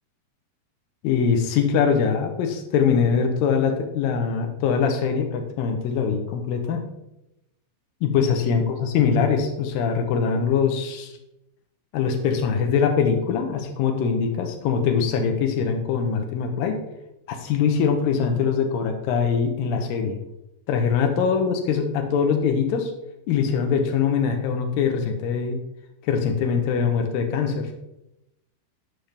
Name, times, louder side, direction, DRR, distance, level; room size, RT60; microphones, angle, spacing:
voice 1, 1.0-6.9 8.0-11.1 11.9-16.8 17.3-20.2 20.7-22.9 23.3-25.6 26.0-27.7, left 6 dB, 75° left, 5 dB, 2.1 m, -22 dB
12.5 x 5.8 x 3.4 m, 0.88 s
omnidirectional pair, 5.4 m